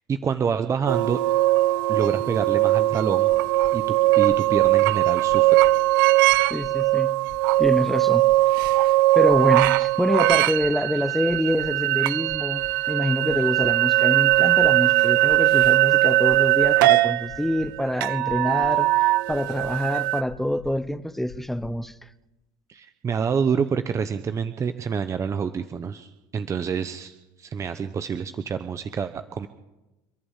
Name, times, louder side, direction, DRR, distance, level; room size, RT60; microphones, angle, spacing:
voice 1, 0.1-1.2 1.9-3.3 3.7-3.8 4.1-5.6 22.7-29.5, right 6 dB, 25° right, 0.9 m, -27 dB
sound 1, 0.9-20.2, right 17 dB, 85° right, 0.8 m, -20 dB
sound 2, 3.3-3.7 4.2-4.7 5.2-5.7 6.2-6.7 7.2-7.7 8.2-8.7 9.2-9.7 10.2-10.7 11.2-11.7 12.2-12.7 13.2-13.7 14.2-14.7 15.2-15.7 16.2-16.7 17.2-17.7 18.2-18.7 19.2-19.7 20.2-20.7 21.2-21.7, left 10 dB, 80° left, 4.2 m, -44 dB
voice 2, 6.5-7.1 7.6-8.2 9.1-21.9, left 1 dB, ahead, 1.0 m, -26 dB
28.5 x 11.0 x 8.4 m
supercardioid pair, 120°, 11 cm